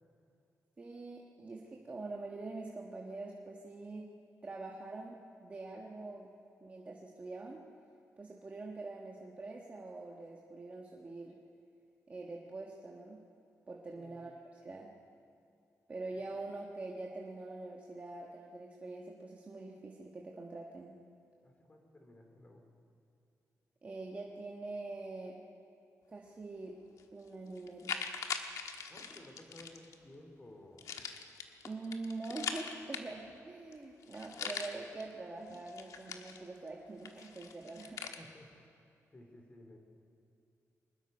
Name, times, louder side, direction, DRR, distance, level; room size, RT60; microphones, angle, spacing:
voice 1, 0.8-4.1 4.4-6.3 6.6-7.6 8.2-11.4 12.1-13.2 13.7-14.9 15.9-21.0 23.8-25.4 26.1-26.8 27.1-28.0 31.6-38.0, right 2 dB, 25° right, -1 dB, 1.3 m, -44 dB
voice 2, 13.9-14.4 16.1-16.3 21.4-22.6 28.9-30.9 37.6-38.5 39.1-39.8, left 1 dB, 25° left, 3 dB, 2.7 m, -56 dB
sound 1, 27.0-27.1 27.6-29.9 30.8-33.4 33.7-33.8 34.0-35.0 35.5-36.7 37.0-38.2, left 6 dB, 80° left, 1.4 m, -42 dB
24.0 x 20.5 x 5.3 m, 2.6 s
wide cardioid pair, 170°, 6 cm